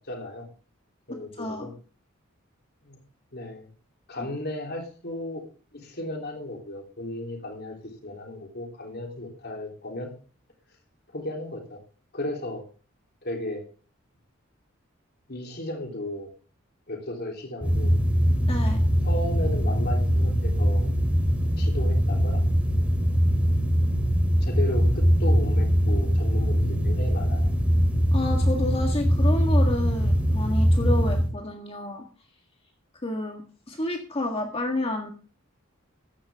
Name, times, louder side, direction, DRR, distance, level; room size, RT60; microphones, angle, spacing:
voice 1, 0.1-0.5 1.1-1.7 2.9-3.0 3.3-3.7 4.1-5.4 5.7-10.1 11.1-11.8 12.1-12.6 13.2-13.6 15.3-16.3 16.9-17.9 19.0-20.9 21.6-22.4 24.4-27.5, left 1 dB, 50° left, 2 dB, 3.4 m, -35 dB
voice 2, 1.3-1.7 4.2-4.3 18.5-18.8 28.1-32.0 33.0-33.4 33.7-35.1, left 1 dB, 30° left, 3 dB, 1.7 m, -30 dB
sound 1, 17.6-31.3, equal, 5° right, 3.2 m, -22 dB
15.0 x 11.5 x 3.6 m, 0.37 s
head